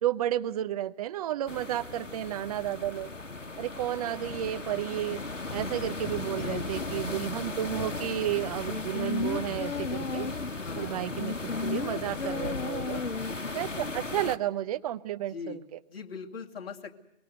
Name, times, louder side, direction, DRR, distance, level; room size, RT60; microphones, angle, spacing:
voice 1, 0.0-3.1 3.6-5.2 5.5-10.3 10.8-11.4 11.6-13.0 13.5-15.8, right 12 dB, 30° right, 11 dB, 0.9 m, -32 dB
sound 1, 1.5-14.4, left 3 dB, 90° left, 1.2 m, -37 dB
voice 2, 6.3-7.0 10.6-11.0 12.9-13.4 15.3-15.6 15.9-17.0, left 5 dB, 50° left, 4 dB, 2.5 m, -41 dB
sound 2, 8.7-10.6 11.2-13.6 13.9-14.0, left 4 dB, 70° left, 1.1 m, -34 dB
24.0 x 22.5 x 8.1 m, 0.83 s
figure-of-eight pair, 125°, 37 cm